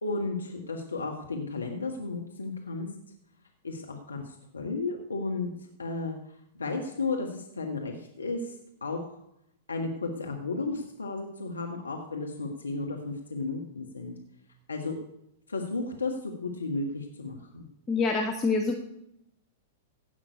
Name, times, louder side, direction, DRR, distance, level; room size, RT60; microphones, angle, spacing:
voice 1, 0.0-2.9 3.6-6.1 6.5-9.0 9.7-14.2 14.7-15.0 15.5-17.6, left 3 dB, 85° left, 2 dB, 1.5 m, -33 dB
voice 2, 17.9-18.8, left 4 dB, 15° left, 2 dB, 1.4 m, -26 dB
16.0 x 6.0 x 8.2 m, 0.81 s
hypercardioid pair, 105°, 0 cm